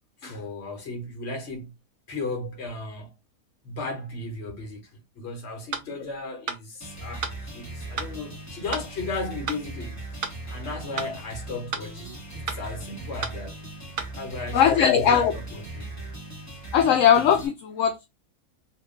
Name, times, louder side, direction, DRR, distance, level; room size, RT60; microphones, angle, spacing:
voice 1, 0.2-1.7 2.1-3.1 3.6-13.6 14.1-15.9, left 3 dB, 55° left, 1.3 m, -35 dB
sound 1, 5.7-5.9 6.5-6.6 7.2-7.4 8.0-8.1 8.7-8.9 9.5-9.6 10.2-10.4 11.0-11.1 11.7-11.9 12.5-12.6 13.2-13.4 14.0-14.1, right 5 dB, 70° right, 1.1 m, -31 dB
sound 2, 6.8-17.5, right 2 dB, 10° left, 1.2 m, -39 dB
voice 2, 14.5-15.4 16.7-18.1, left 8 dB, 70° left, 0.9 m, -20 dB
2.8 x 2.5 x 3.7 m
omnidirectional pair, 1.5 m